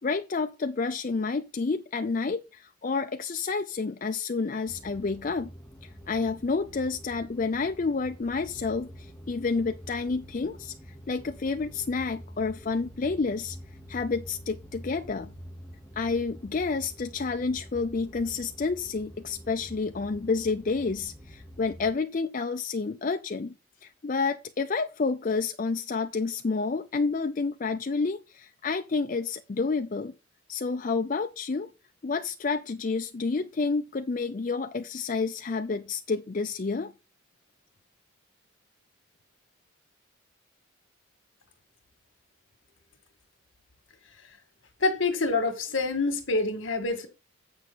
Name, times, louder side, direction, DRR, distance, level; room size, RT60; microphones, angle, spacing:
voice 1, 0.0-5.5 5.8-13.6 13.9-15.3 16.0-23.5 23.8-30.1 30.5-31.7 32.0-36.9, left 4 dB, 40° left, 0.4 m, -29 dB
sound 1, 4.7-21.9, equal, 5° left, 0.9 m, -47 dB
voice 2, 44.8-47.1, left 3 dB, 65° left, 1.8 m, -26 dB
8.3 x 6.3 x 4.0 m
head